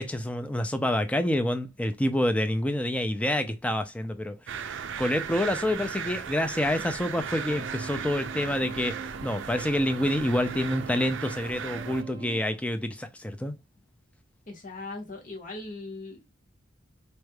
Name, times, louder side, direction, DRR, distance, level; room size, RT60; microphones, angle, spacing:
voice 1, 0.0-9.0 9.2-13.5, left 1 dB, 5° left, 0.4 m, -28 dB
sound 1, 4.5-12.0, right 7 dB, 60° right, 0.4 m, -37 dB
sound 2, 7.2-12.4, right 4 dB, 25° right, 1.2 m, -42 dB
voice 2, 14.5-16.3, left 2 dB, 40° left, 1.2 m, -39 dB
4.2 x 3.2 x 2.3 m
head